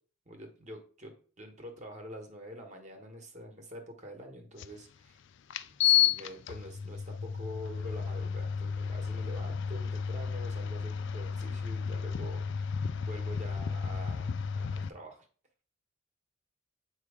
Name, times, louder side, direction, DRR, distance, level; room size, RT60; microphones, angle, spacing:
voice 1, 0.3-4.9 5.8-15.3, equal, 35° right, 3 dB, 1.2 m, -46 dB
sound 1, 4.6-4.7 5.5-14.9, left 8 dB, 55° left, 0.4 m, -32 dB
8.0 x 3.1 x 4.9 m, 0.40 s
head